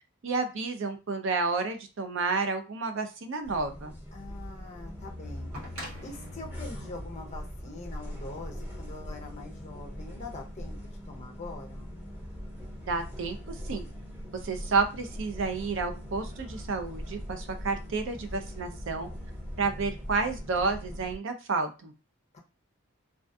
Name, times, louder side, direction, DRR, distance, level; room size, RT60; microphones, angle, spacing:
voice 1, 0.2-3.9 12.8-13.9 14.4-19.1 19.6-21.9, right 4 dB, 55° right, 7 dB, 0.4 m, -30 dB
sound 1, 3.4-21.2, equal, 5° right, 0.9 m, -41 dB
voice 2, 4.1-11.9 22.3-22.4, left 3 dB, 30° left, 1 dB, 0.5 m, -44 dB
sound 2, 5.5-8.4 9.6-9.7, equal, 75° right, 1.1 m, -46 dB
2.3 x 2.3 x 2.5 m, 0.30 s
head